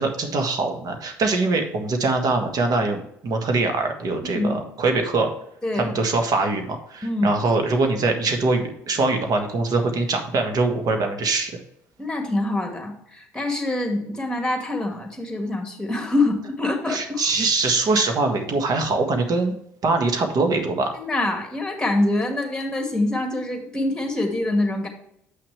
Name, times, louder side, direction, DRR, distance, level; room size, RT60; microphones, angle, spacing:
voice 1, 0.0-5.3 5.7-11.5 16.9-19.5 19.8-21.0, right 3 dB, 50° right, 4 dB, 1.5 m, -23 dB
voice 2, 4.2-4.6 5.6-5.9 7.0-7.4 12.0-17.2 20.9-24.9, left 2 dB, 10° left, 4 dB, 1.9 m, -25 dB
8.0 x 5.9 x 3.3 m, 0.74 s
hypercardioid pair, 60°, 9 cm